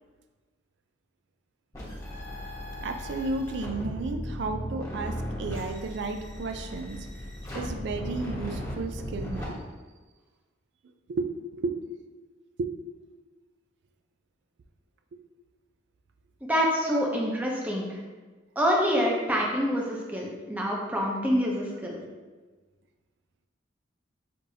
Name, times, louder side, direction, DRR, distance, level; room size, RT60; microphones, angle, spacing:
sound 1, 1.7-9.5, equal, 15° left, 0.9 m, -36 dB
voice 1, 2.8-7.1 7.5-9.6 11.1-11.3 11.5-11.7 12.6-12.7 16.8-17.0, right 3 dB, 65° right, 6 dB, 0.3 m, -33 dB
voice 2, 16.5-18.0 18.6-22.0, equal, 10° right, -2 dB, 0.6 m, -26 dB
6.4 x 2.6 x 2.7 m, 1.3 s
head